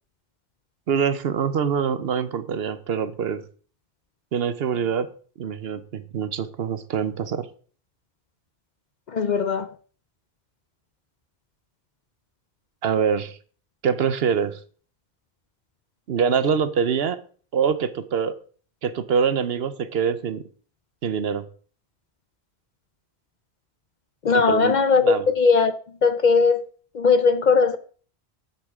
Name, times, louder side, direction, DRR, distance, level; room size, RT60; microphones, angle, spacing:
voice 1, 0.9-3.5 4.3-5.1 5.4-7.5 12.8-13.4 13.8-14.6 16.1-17.2 17.5-18.4 18.8-20.4 21.0-21.4 24.3-24.7 25.0-25.2, right 7 dB, 70° right, 0.9 m, -24 dB
voice 2, 9.1-9.7 24.2-25.7 26.0-26.7 26.9-27.8, left 4 dB, 50° left, 0.6 m, -19 dB
10.0 x 8.1 x 3.6 m
omnidirectional pair, 1.1 m